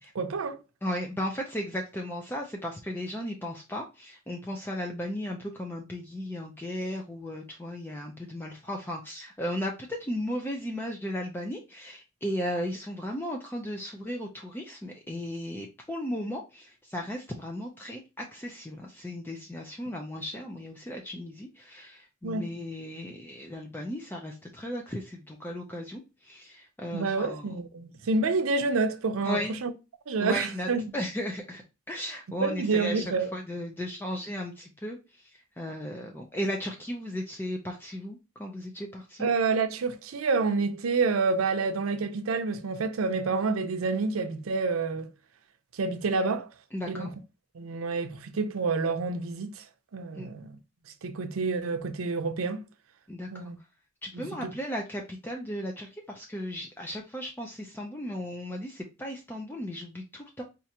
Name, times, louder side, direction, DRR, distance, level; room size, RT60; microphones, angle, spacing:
voice 1, 0.1-0.6 22.2-22.4 26.9-29.7 30.1-30.8 32.4-33.3 39.2-45.1 45.8-46.5 46.9-47.1 47.5-49.6 49.9-50.5 51.0-52.6 53.3-53.6 54.1-54.5, right 4 dB, 90° right, 0.5 m, -28 dB
voice 2, 0.8-27.5 29.2-29.6 30.2-30.7 30.9-31.6 31.9-35.3 35.6-39.3 46.7-47.1 50.1-50.3 53.1-53.5 54.0-60.4, equal, 10° left, 0.4 m, -35 dB
4.5 x 2.5 x 2.8 m
head